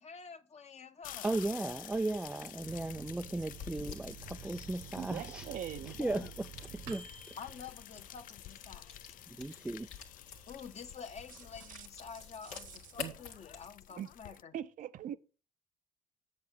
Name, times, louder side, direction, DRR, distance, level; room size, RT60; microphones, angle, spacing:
voice 1, 0.0-1.3 6.0-6.3 7.4-9.2 10.5-14.5, left 6 dB, 45° left, 1.1 m, -48 dB
sound 1, 1.0-14.4, left 12 dB, 60° left, 0.5 m, -50 dB
sound 2, 1.2-13.7, left 6 dB, 85° left, 1.6 m, -52 dB
voice 2, 1.2-5.5 5.9-6.5 6.7-7.4 9.3-9.9, right 2 dB, 5° right, 0.3 m, -36 dB
Microwave oven, 2.6-8.7 9.1-9.2 9.5-10.1, right 8 dB, 75° right, 1.3 m, -51 dB
voice 3, 5.0-6.0 11.7-11.9 12.5-13.1 14.0-15.2, right 10 dB, 55° right, 0.6 m, -43 dB
8.5 x 7.1 x 4.5 m
hypercardioid pair, 55°, 16 cm